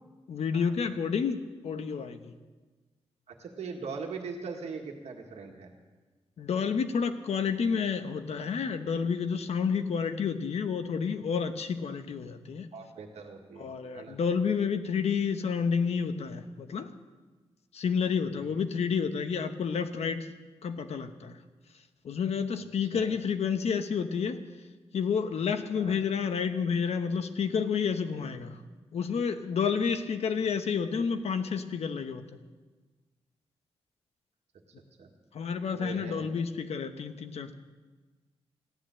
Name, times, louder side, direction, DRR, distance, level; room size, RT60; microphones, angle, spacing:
voice 1, 0.3-1.4 1.6-2.3 6.4-12.7 13.6-16.9 17.7-20.3 20.6-21.4 22.0-24.4 24.9-28.6 28.9-32.2 35.3-37.5, left 6 dB, 75° left, 8 dB, 1.0 m, -30 dB
voice 2, 3.3-5.7 12.7-13.7 13.9-14.2 18.5-18.6 22.9-23.2 25.7-26.0 35.0-35.1 35.7-36.3, right 5 dB, 85° right, 2 dB, 1.7 m, -41 dB
15.0 x 10.5 x 7.6 m, 1.3 s
wide cardioid pair, 105°, 11 cm